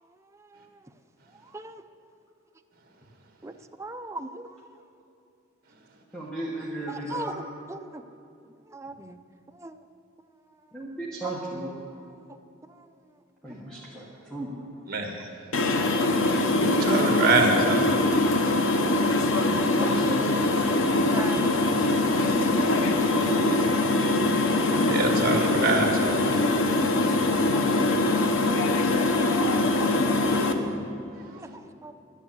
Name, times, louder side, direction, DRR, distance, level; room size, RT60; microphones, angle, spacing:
voice 1, 0.4-0.8 1.4-1.8 3.4-3.5 3.8-4.6 6.9-8.0 8.7-9.2 9.5-9.8 12.3-12.4 12.7-12.9 13.7-13.9 14.9-15.0 21.1-22.0 27.0-27.1 27.7-28.5 29.1-30.7 31.3-31.9, right 2 dB, 15° right, 7 dB, 0.5 m, -40 dB
voice 2, 6.1-7.4 10.7-11.7 13.4-14.5 19.7-20.3, right 1 dB, 5° left, -6 dB, 1.4 m, -35 dB
voice 3, 14.9-15.2 16.6-18.0 24.7-26.4, right 3 dB, 50° right, 2 dB, 1.8 m, -25 dB
sound 1, 15.5-30.5, left 2 dB, 85° left, 1.0 m, -23 dB
12.0 x 9.9 x 7.9 m, 2.7 s
head